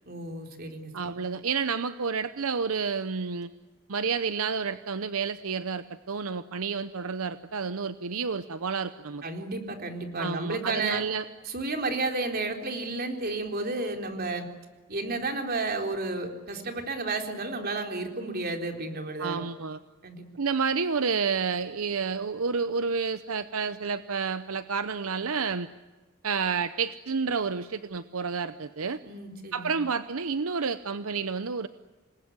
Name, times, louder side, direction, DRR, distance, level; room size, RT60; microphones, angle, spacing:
voice 1, 0.1-0.9 9.2-11.0 11.5-14.5 14.9-19.4 20.0-20.3 29.0-29.8, right 3 dB, 45° right, 4 dB, 3.9 m, -32 dB
voice 2, 0.9-3.5 3.9-9.2 10.2-11.2 19.2-19.8 20.4-25.7 26.2-29.0 29.5-31.7, right 5 dB, 75° right, 12 dB, 0.8 m, -30 dB
28.0 x 21.0 x 9.7 m, 1.3 s
head